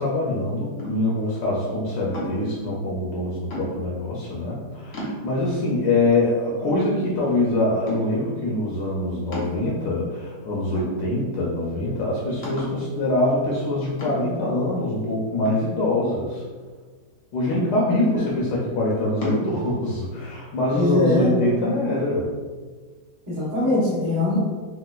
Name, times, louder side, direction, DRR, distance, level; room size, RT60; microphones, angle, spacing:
voice 1, 0.0-16.4 17.3-22.3, left 2 dB, 75° left, -5 dB, 1.2 m, -24 dB
sound 1, 0.8-1.2 2.1-2.6 3.5-4.0 4.5-4.6 4.9-5.6 6.1-6.2 6.6-7.4 7.9-8.3 9.3-10.0 10.7-11.4 11.7-11.8 12.4-12.9 14.0-14.5 15.4-16.3 17.5-18.1 19.2-19.5, equal, 55° left, 1.0 m, -33 dB
voice 2, 20.7-21.3 23.3-24.4, left 2 dB, 20° right, -8 dB, 0.6 m, -21 dB
3.0 x 2.9 x 2.2 m, 1.5 s
omnidirectional pair, 1.9 m